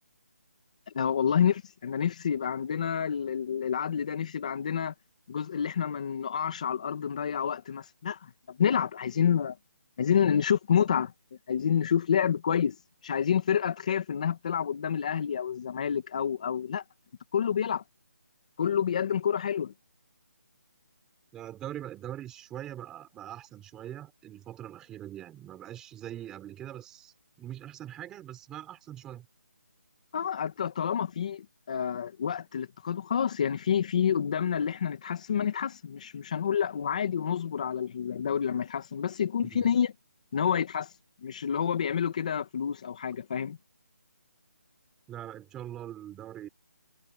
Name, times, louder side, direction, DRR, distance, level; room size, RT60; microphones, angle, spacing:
voice 1, 0.9-4.9 5.3-9.6 10.0-11.1 11.5-12.8 13.0-16.8 17.3-17.8 18.6-19.7 30.1-39.9 40.3-40.9 41.2-43.6, left 8 dB, 25° left, 2.1 m, -28 dB
voice 2, 21.3-29.3 39.4-39.7 45.1-46.5, right 12 dB, 5° right, 5.2 m, -42 dB
hypercardioid pair, 175°, 9 cm